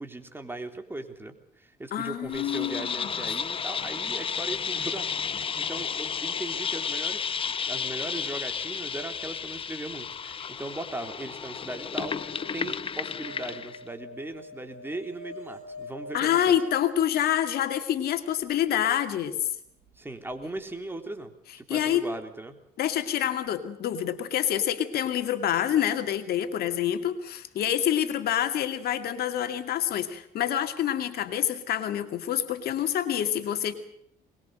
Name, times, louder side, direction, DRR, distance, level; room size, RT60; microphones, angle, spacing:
voice 1, 0.0-16.6 19.9-22.6, right 2 dB, 15° right, 6 dB, 3.5 m, -38 dB
voice 2, 1.9-3.3 16.1-19.4 21.7-22.0 22.8-33.7, left 10 dB, 65° left, 8 dB, 2.3 m, -27 dB
sound 1, 2.3-13.8, left 6 dB, 30° left, 0.9 m, -32 dB
sound 2, 11.8-18.0 20.3-20.4 20.6-20.7, left 2 dB, 60° right, 7.5 m, -46 dB
23.0 x 21.5 x 6.6 m, 0.69 s
cardioid pair, 110°, 17 cm